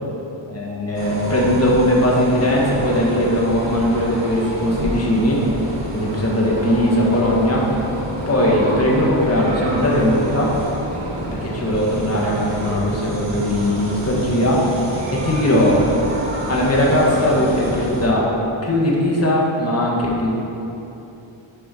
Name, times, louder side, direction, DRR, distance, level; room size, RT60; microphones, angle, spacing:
voice 1, 0.5-5.4 5.9-7.6 8.3-10.5 11.4-14.6 15.1-15.8 16.5-18.3 18.6-20.3, left 1 dB, 30° left, -3 dB, 1.3 m, -19 dB
sound 1, 0.9-18.1, right 1 dB, 55° right, 1.5 m, -28 dB
7.0 x 4.4 x 5.5 m, 2.9 s
wide cardioid pair, 125°, 50 cm